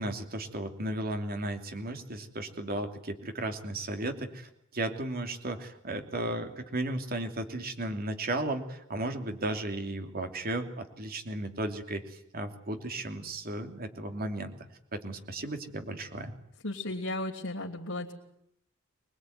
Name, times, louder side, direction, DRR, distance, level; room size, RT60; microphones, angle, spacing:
voice 1, 0.0-14.5 14.9-16.3, right 1 dB, 45° right, 6 dB, 3.0 m, -35 dB
voice 2, 16.6-18.1, left 2 dB, 65° left, -4 dB, 3.1 m, -35 dB
25.5 x 21.0 x 9.6 m, 0.76 s
head